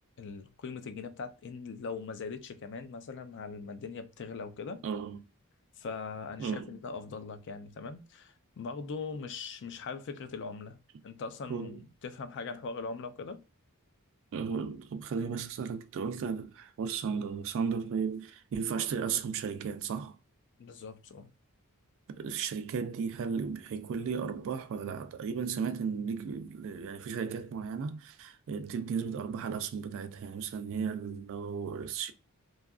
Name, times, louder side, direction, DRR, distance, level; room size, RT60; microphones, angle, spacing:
voice 1, 0.2-4.8 5.8-10.8 11.0-13.4 20.6-21.3, left 4 dB, 55° left, 0.4 m, -41 dB
voice 2, 4.8-5.2 6.4-6.8 11.5-11.8 14.3-20.2 22.1-32.1, right 6 dB, 60° right, 0.3 m, -35 dB
2.7 x 2.4 x 2.3 m
head